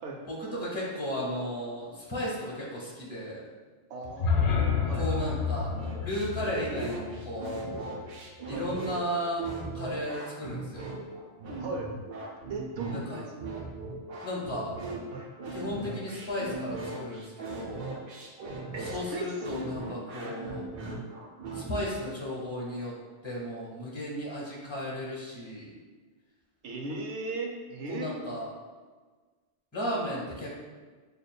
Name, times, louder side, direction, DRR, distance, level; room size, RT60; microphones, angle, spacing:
voice 1, 0.3-3.5 4.9-5.7 6.0-7.9 8.5-9.5 9.7-10.9 12.9-13.3 14.2-14.7 15.5-17.9 18.8-20.7 21.5-22.9 23.2-25.8 27.9-28.5 29.7-30.5, equal, 25° left, -5 dB, 1.2 m, -35 dB
voice 2, 3.9-4.4 4.9-5.1 8.5-8.6 11.6-11.9 12.5-13.3 15.1-15.2 18.7-19.3 20.2-20.4 26.6-28.1, right 3 dB, 90° right, 1 dB, 0.9 m, -36 dB
sound 1, 4.0-8.1, left 5 dB, 75° left, 0.9 m, -30 dB
sound 2, 5.7-21.7, right 3 dB, 60° right, 0.8 m, -39 dB
6.4 x 2.5 x 2.2 m, 1.4 s
omnidirectional pair, 1.2 m